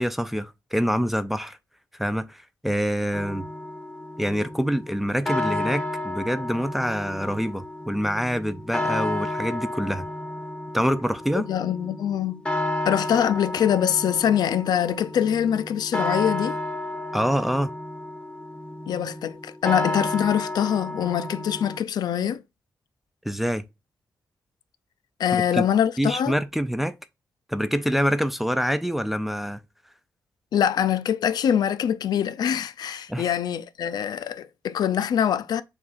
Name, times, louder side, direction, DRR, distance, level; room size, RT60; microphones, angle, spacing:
voice 1, 0.0-1.6 2.0-3.5 4.2-10.1 10.7-11.4 17.1-17.7 23.3-23.6 25.3-25.6 26.0-27.0 27.5-29.6 33.1-33.3, equal, 5° right, 0.3 m, -26 dB
sound 1, 3.1-21.8, left 1 dB, 15° left, 0.7 m, -32 dB
voice 2, 11.3-12.4 12.8-16.6 18.9-22.4 25.2-26.4 30.5-35.6, left 9 dB, 70° left, 0.4 m, -24 dB
7.0 x 2.4 x 2.4 m
wide cardioid pair, 145°, 7 cm